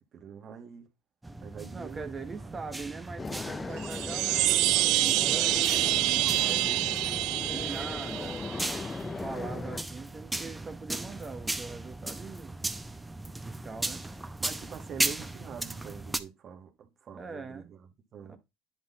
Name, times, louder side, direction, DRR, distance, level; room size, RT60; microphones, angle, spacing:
voice 1, 0.1-0.9 1.4-2.1 2.4-2.6 14.4-17.8 18.1-18.4, right 7 dB, 45° right, 2.0 m, -44 dB
sound 1, 1.2-16.2, right 2 dB, 10° right, 0.8 m, -37 dB
voice 2, 1.7-7.0 7.5-8.4 9.0-12.6 13.4-14.1 17.1-17.7 18.2-18.4, right 4 dB, 25° right, 1.1 m, -42 dB
sound 2, 3.2-9.8, left 4 dB, 25° left, 0.5 m, -38 dB
sound 3, 3.8-8.8, right 18 dB, 65° right, 0.3 m, -27 dB
10.5 x 4.2 x 4.1 m
supercardioid pair, 85°, 0 cm